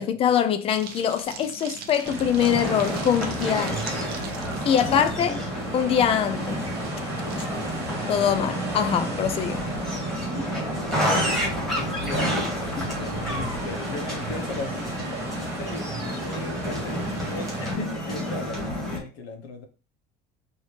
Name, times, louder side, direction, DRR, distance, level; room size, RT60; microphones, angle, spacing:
voice 1, 0.0-3.8 4.7-5.4 5.7-6.7 8.1-9.7 12.8-12.9, left 8 dB, 30° left, 0.4 m, -23 dB
sound 1, 0.7-7.5, right 6 dB, 55° right, 0.7 m, -42 dB
sound 2, 2.0-17.7, right 2 dB, 15° right, 1.4 m, -34 dB
sound 3, 2.4-19.0, equal, ahead, 1.9 m, -30 dB
voice 2, 4.6-5.4 8.5-8.7 9.2-9.3 10.3-12.4 12.8-14.8 15.6-19.7, left 2 dB, 80° left, 1.0 m, -37 dB
4.7 x 2.8 x 3.3 m
cardioid pair, 160°, 19 cm